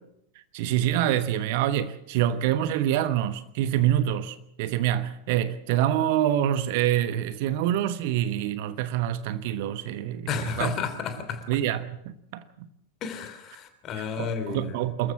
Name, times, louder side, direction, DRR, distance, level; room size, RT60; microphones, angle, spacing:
voice 1, 0.5-10.8 11.5-12.7 14.0-15.1, right 11 dB, 50° right, 1.2 m, -26 dB
voice 2, 10.3-11.5 13.0-14.7, left 6 dB, 35° left, 3.3 m, -32 dB
26.0 x 14.5 x 7.4 m
figure-of-eight pair, 90°, 0 cm